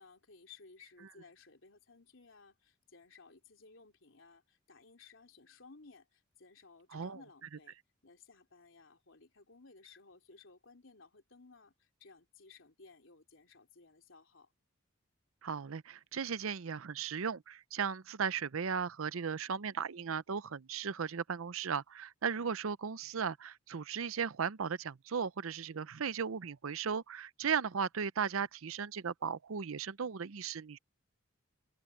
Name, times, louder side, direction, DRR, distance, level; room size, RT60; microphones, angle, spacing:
voice 1, 0.0-7.8 8.0-14.5, left 4 dB, 70° left, 3.2 m, -59 dB
voice 2, 15.4-30.8, right 6 dB, 90° right, 0.6 m, -36 dB
open air
head